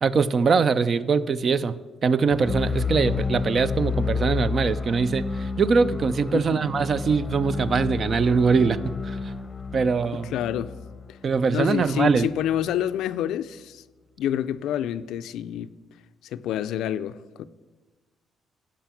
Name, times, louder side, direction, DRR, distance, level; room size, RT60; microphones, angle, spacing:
voice 1, 0.0-9.3 9.7-10.3 11.2-12.3, right 5 dB, 45° right, 0.5 m, -22 dB
sound 1, 2.3-12.3, left 5 dB, 20° left, 0.7 m, -31 dB
voice 2, 10.3-10.7 11.1-11.2 11.5-13.8 14.2-15.7 16.3-17.4, left 11 dB, 85° left, 0.4 m, -28 dB
11.5 x 5.2 x 7.2 m
cardioid pair, 90°, 0 cm